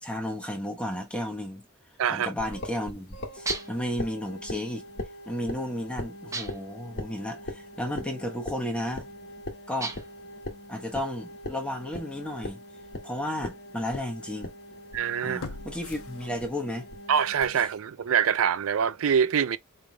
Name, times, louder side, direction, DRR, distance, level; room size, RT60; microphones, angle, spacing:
voice 1, 0.0-1.6 2.1-4.8 5.3-9.1 9.7-9.9 10.7-12.6 13.0-14.5 15.2-16.9, left 1 dB, 5° left, 1.2 m, -33 dB
sound 1, 2.4-17.7, left 1 dB, 50° left, 2.0 m, -41 dB
sound 2, 3.5-3.9 6.3-6.8 9.8-10.3, right 3 dB, 15° right, 0.7 m, -34 dB
sound 3, 12.1-12.2 12.8-12.9 15.4-16.8 17.2-17.3, left 3 dB, 80° left, 1.0 m, -42 dB
voice 2, 14.9-15.5 17.1-19.6, right 7 dB, 70° right, 0.4 m, -24 dB
6.7 x 3.4 x 2.3 m
head